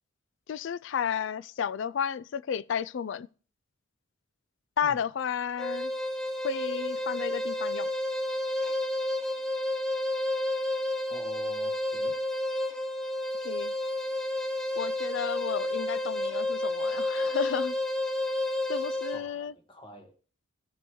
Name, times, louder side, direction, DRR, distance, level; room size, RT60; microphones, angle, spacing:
voice 1, 0.5-3.3 4.8-5.9 6.4-7.9 13.4-13.7 14.8-17.8 18.7-19.5, left 7 dB, 65° left, 0.3 m, -32 dB
sound 1, 5.6-19.3, left 1 dB, 5° left, 0.6 m, -30 dB
voice 2, 11.1-12.1 19.1-20.1, equal, 25° left, 1.4 m, -47 dB
14.5 x 5.3 x 3.1 m
head